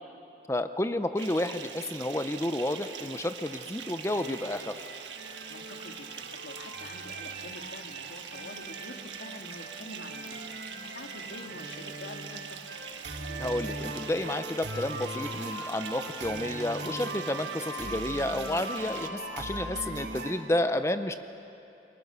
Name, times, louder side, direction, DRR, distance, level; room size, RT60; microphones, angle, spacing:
voice 1, 0.5-4.8 13.4-21.2, left 1 dB, 15° left, 10 dB, 0.6 m, -31 dB
Bathtub (filling or washing) / Fill (with liquid), 1.2-19.1, right 7 dB, 85° right, 1.5 m, -43 dB
sound 1, 4.1-20.3, right 2 dB, 70° right, 2.6 m, -40 dB
voice 2, 5.5-10.6 10.8-12.7, left 2 dB, 75° left, 4 dB, 1.9 m, -46 dB
29.5 x 23.0 x 6.8 m, 2.9 s
head